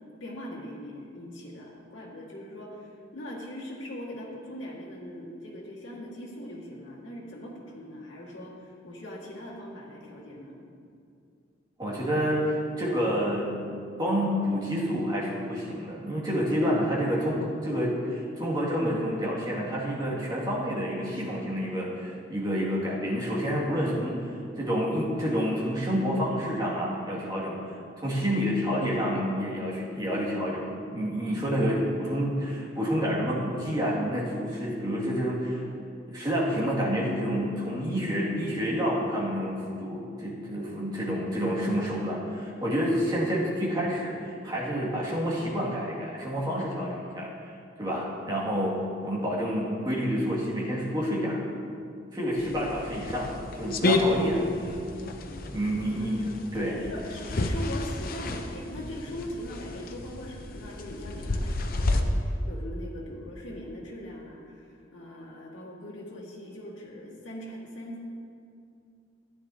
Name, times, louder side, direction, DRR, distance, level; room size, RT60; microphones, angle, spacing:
voice 1, 0.2-10.7 55.8-56.2 56.5-68.1, equal, 85° left, -5 dB, 1.9 m, -40 dB
voice 2, 11.8-13.5 14.0-24.2 24.6-27.6 28.0-30.6 30.9-35.6 36.1-47.5 47.8-48.8 49.0-51.4 52.1-53.3 53.5-54.8 55.5-56.8, equal, 20° right, -5 dB, 2.1 m, -28 dB
sound 1, 52.4-62.0, left 2 dB, 50° left, 0.6 m, -31 dB
13.5 x 10.0 x 2.8 m, 2.5 s
head